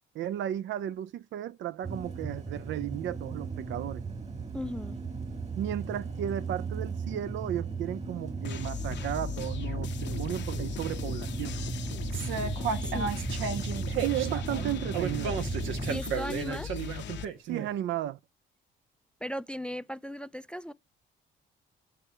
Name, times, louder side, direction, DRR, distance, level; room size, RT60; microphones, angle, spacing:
voice 1, 0.1-4.0 5.6-11.6 14.0-15.4 17.5-18.2, right 12 dB, 70° right, 0.4 m, -34 dB
sound 1, 1.8-16.0, right 4 dB, 35° right, 1.7 m, -36 dB
voice 2, 4.5-5.0 12.8-13.1 15.9-16.7 19.2-20.7, equal, 5° left, 0.3 m, -37 dB
sound 2, 8.4-17.3, left 7 dB, 65° left, 0.7 m, -38 dB
sound 3, 12.1-17.7, right 6 dB, 90° right, 1.1 m, -33 dB
6.7 x 4.5 x 4.7 m
cardioid pair, 90°, 20 cm